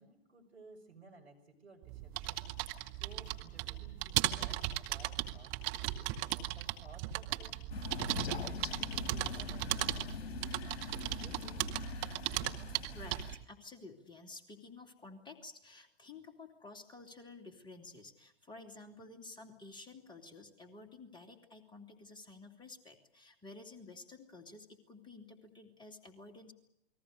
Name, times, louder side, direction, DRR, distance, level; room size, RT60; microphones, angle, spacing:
voice 1, 0.0-2.5 2.9-7.6 8.0-11.6, right 3 dB, 80° right, 5 dB, 6.0 m, -58 dB
sound 1, 1.8-13.4, right 15 dB, 35° right, 2.1 m, -37 dB
Crow, 7.7-13.4, left 6 dB, 65° left, 1.4 m, -43 dB
voice 2, 12.9-26.5, left 3 dB, 15° left, 4 dB, 2.8 m, -52 dB
29.0 x 21.0 x 6.7 m, 0.77 s
figure-of-eight pair, 105°, 33 cm